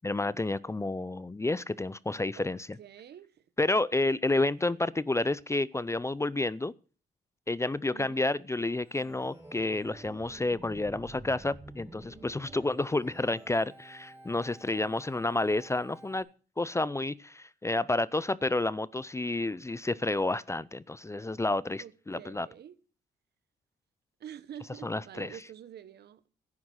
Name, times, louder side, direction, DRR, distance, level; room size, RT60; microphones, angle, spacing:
voice 1, 0.0-2.7 3.6-6.7 7.5-16.3 16.6-22.5 24.8-25.3, left 2 dB, 15° left, 0.5 m, -30 dB
voice 2, 2.8-3.4 4.1-4.8 7.9-8.2 21.8-22.7 24.2-26.3, right 9 dB, 70° right, 1.2 m, -47 dB
Organ, 8.8-16.2, right 1 dB, 15° right, 4.4 m, -50 dB
11.0 x 9.5 x 6.3 m
supercardioid pair, 65°, 18 cm